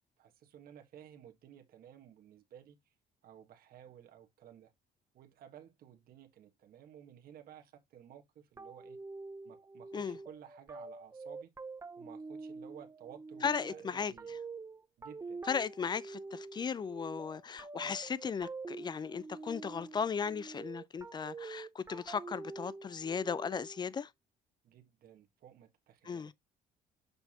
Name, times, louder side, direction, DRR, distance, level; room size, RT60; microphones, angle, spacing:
voice 1, 0.2-2.7 3.2-4.7 5.1-9.0 9.4-11.5 12.0-14.4 15.0-15.4 24.6-26.3, right 10 dB, 60° right, 1.4 m, -55 dB
sound 1, 8.6-23.9, right 3 dB, 15° right, 0.7 m, -46 dB
voice 2, 13.4-14.1 15.4-24.1 26.1-26.3, left 6 dB, 25° left, 0.4 m, -36 dB
6.9 x 5.6 x 2.9 m
cardioid pair, 110°, 17 cm